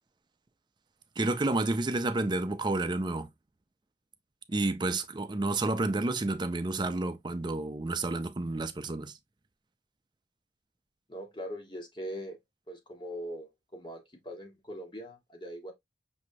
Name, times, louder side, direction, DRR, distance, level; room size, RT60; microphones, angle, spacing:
voice 1, 1.2-3.3 4.5-9.2, right 2 dB, 25° right, 0.5 m, -30 dB
voice 2, 11.1-12.4 12.7-15.7, equal, 25° left, 1.3 m, -41 dB
6.1 x 3.2 x 2.7 m
head